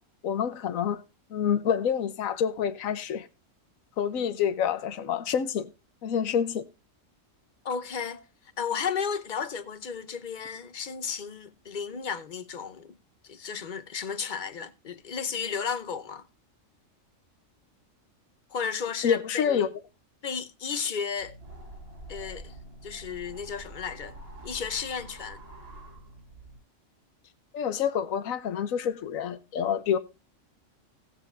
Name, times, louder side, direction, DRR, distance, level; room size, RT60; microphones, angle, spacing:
voice 1, 0.2-1.0 1.3-3.3 4.0-5.7 6.0-6.6 19.0-19.7 27.5-30.0, left 8 dB, 80° left, 1.2 m, -27 dB
voice 2, 7.6-8.2 8.6-12.9 13.2-16.2 18.5-19.7 20.2-21.4 22.1-22.5 22.8-24.2 24.4-25.4, left 6 dB, 40° left, 0.9 m, -33 dB
sound 1, 21.2-26.6, right 1 dB, 45° right, 2.7 m, -46 dB
17.5 x 7.4 x 2.5 m
omnidirectional pair, 1.4 m